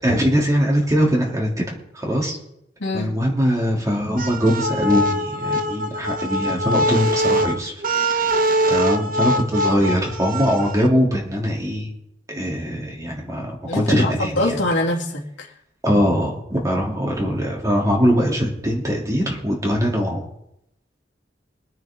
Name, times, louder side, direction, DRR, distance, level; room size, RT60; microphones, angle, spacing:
voice 1, 0.0-2.4 2.9-7.8 8.7-11.9 12.3-14.6 15.8-20.3, equal, 20° right, -1 dB, 3.1 m, -21 dB
voice 2, 2.8-3.1 13.7-15.5, left 1 dB, 85° left, -3 dB, 2.8 m, -24 dB
sound 1, 4.2-10.9, equal, 50° right, 0.9 m, -22 dB
24.5 x 9.0 x 3.8 m, 0.80 s
head